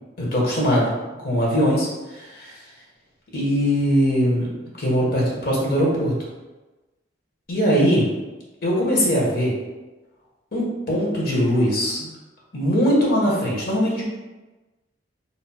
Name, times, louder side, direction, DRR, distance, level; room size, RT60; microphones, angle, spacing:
voice 1, 0.2-0.9 1.2-2.5 3.3-4.5 4.8-6.1 7.5-8.0 8.6-9.5 10.5-12.0 12.5-14.0, equal, 55° left, -4 dB, 1.4 m, -21 dB
5.1 x 4.3 x 2.3 m, 1.2 s
head